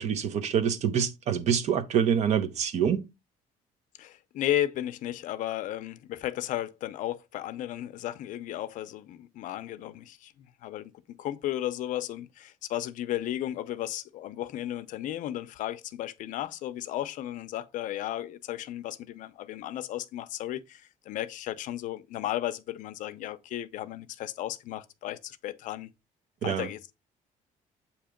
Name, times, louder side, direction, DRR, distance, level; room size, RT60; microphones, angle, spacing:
voice 1, 0.0-3.0 26.4-26.7, right 8 dB, 50° right, 0.7 m, -26 dB
voice 2, 4.0-10.9 11.2-25.9 26.4-26.9, left 13 dB, 65° left, 0.6 m, -34 dB
7.9 x 2.9 x 5.0 m
cardioid pair, 180°, 15 cm